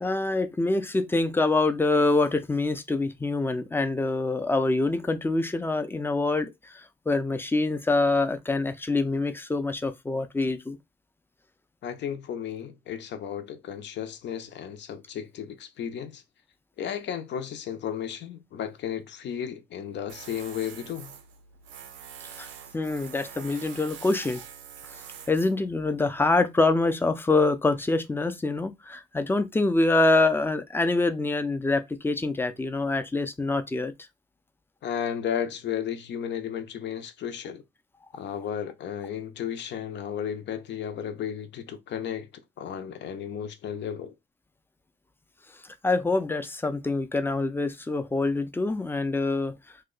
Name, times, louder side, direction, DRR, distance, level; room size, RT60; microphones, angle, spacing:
voice 1, 0.0-10.8 22.4-22.5 22.7-24.4 24.9-25.0 25.3-33.9 45.8-49.5, left 2 dB, 10° left, 0.4 m, -25 dB
voice 2, 11.8-16.2 16.8-21.1 34.8-37.6 38.1-42.3 42.6-44.1, left 9 dB, 65° left, 0.6 m, -34 dB
Tools, 20.1-26.6, right 8 dB, 80° right, 0.5 m, -45 dB
2.8 x 2.2 x 3.7 m
cardioid pair, 90°, 20 cm